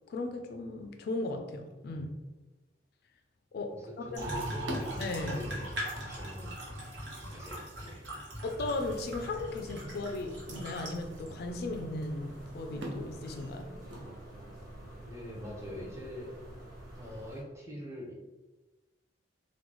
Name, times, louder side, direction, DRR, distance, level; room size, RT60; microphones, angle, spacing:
voice 1, 0.1-2.1 3.5-4.3 5.0-5.5 8.4-13.7, left 2 dB, 55° left, 6 dB, 0.3 m, -36 dB
sound 1, 3.6-14.7, equal, 90° right, 0.7 m, -47 dB
voice 2, 3.7-4.7 5.3-5.8 6.1-6.6 7.3-8.1 15.0-16.4 17.0-18.1, left 1 dB, 15° right, -1 dB, 0.6 m, -44 dB
sound 2, 4.1-11.3 12.0-12.1 13.2-13.5, right 1 dB, 75° right, 1.1 m, -40 dB
sound 3, 8.6-17.4, right 1 dB, 50° right, 1.3 m, -48 dB
3.7 x 2.2 x 3.0 m, 1.1 s
head